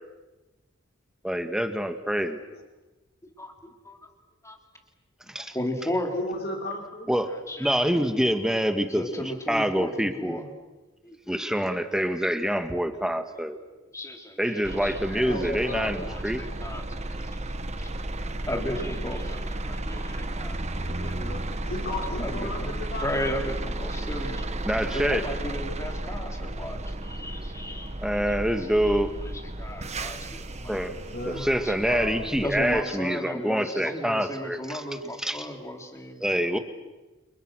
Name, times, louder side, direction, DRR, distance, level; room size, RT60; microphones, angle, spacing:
voice 1, 1.2-2.4 5.3-5.5 7.1-7.3 7.6-10.4 11.3-13.6 14.4-16.4 24.6-25.2 28.0-29.1 30.7-30.9 31.2-34.8 35.2-35.5 36.2-36.6, equal, 5° right, 8 dB, 1.8 m, -26 dB
voice 2, 3.2-4.0 4.4-4.6 5.2-6.1 7.5-7.8 9.0-10.5 11.0-11.6 13.9-15.8 16.0-16.8 18.5-21.1 22.2-24.5 24.9-29.0 29.3-30.7 31.3-31.7 32.4-36.5, left 1 dB, 15° left, 3 dB, 3.8 m, -35 dB
voice 3, 6.1-7.1 15.2-16.1 20.8-23.4 30.6-31.5 31.9-32.2 32.5-32.9, left 1 dB, 50° left, 1 dB, 5.3 m, -35 dB
sound 1, 14.6-32.8, right 1 dB, 35° right, 1.4 m, -33 dB
29.5 x 29.0 x 6.4 m, 1.1 s
head